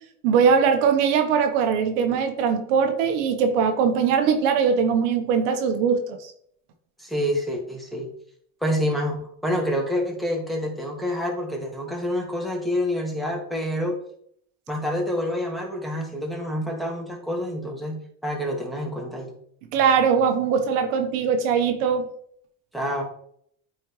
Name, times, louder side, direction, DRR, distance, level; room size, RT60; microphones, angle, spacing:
voice 1, 0.2-6.3 19.7-22.1, right 6 dB, 80° right, 6 dB, 1.1 m, -21 dB
voice 2, 7.0-8.1 8.6-14.0 14.7-19.3 22.7-23.0, equal, ahead, -1 dB, 2.0 m, -27 dB
8.9 x 4.2 x 3.1 m, 0.66 s
supercardioid pair, 90°, 36 cm